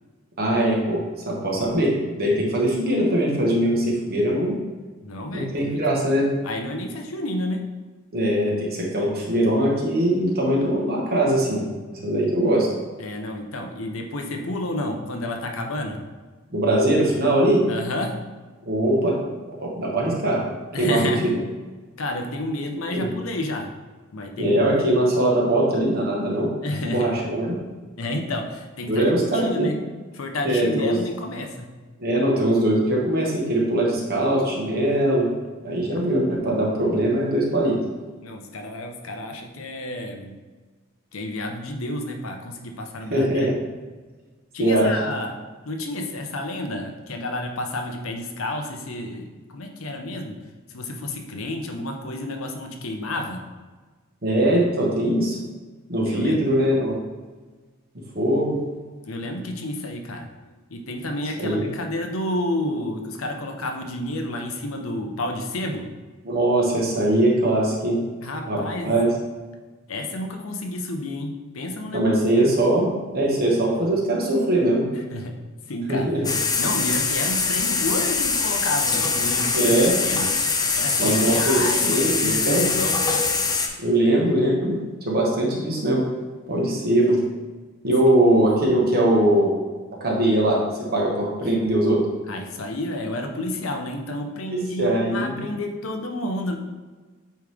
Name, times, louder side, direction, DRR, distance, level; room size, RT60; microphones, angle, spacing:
voice 1, 0.4-4.6 5.3-6.3 8.1-11.6 12.0-12.7 16.5-17.7 18.7-19.2 19.6-20.4 20.8-21.4 22.9-23.1 24.4-26.5 26.8-27.5 28.9-29.7 30.4-31.0 32.0-35.3 35.6-37.8 43.1-43.6 44.6-44.9 54.2-55.4 55.9-57.0 58.1-58.6 61.4-61.7 66.2-68.0 68.5-69.1 71.9-74.9 75.9-76.2 79.5-79.9 81.0-82.7 83.8-84.8 85.0-86.0 86.5-87.2 87.8-89.5 90.0-90.6 90.9-92.0 94.5-95.4, right 1 dB, 50° right, -3 dB, 1.3 m, -21 dB
voice 2, 5.0-5.8 6.4-7.7 13.0-16.0 17.7-18.2 20.7-21.3 22.0-23.7 24.1-25.0 26.6-27.1 28.0-29.8 30.1-31.7 38.2-40.4 41.1-43.5 44.5-45.3 45.6-50.4 50.7-53.4 56.1-56.4 59.0-60.3 60.7-65.9 68.2-69.0 69.9-72.6 74.9-75.4 75.7-76.1 76.6-80.3 80.7-83.2 91.4-91.5 92.3-96.6, left 1 dB, 80° left, 4 dB, 0.8 m, -30 dB
sound 1, 76.2-83.7, left 4 dB, 20° left, 0.5 m, -23 dB
8.4 x 3.2 x 3.5 m, 1.3 s
head